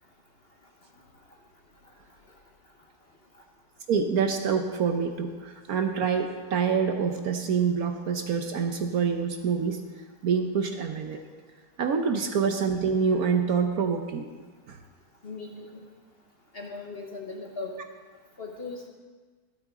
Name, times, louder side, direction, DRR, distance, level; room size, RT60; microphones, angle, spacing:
voice 1, 3.9-9.8 10.2-11.2 11.8-14.2 14.7-14.8, right 6 dB, 65° right, 5 dB, 1.1 m, -26 dB
voice 2, 15.2-15.7 16.5-17.8 18.4-18.9, left 3 dB, 40° left, 1 dB, 1.1 m, -38 dB
13.5 x 12.0 x 3.7 m, 1.4 s
omnidirectional pair, 1.9 m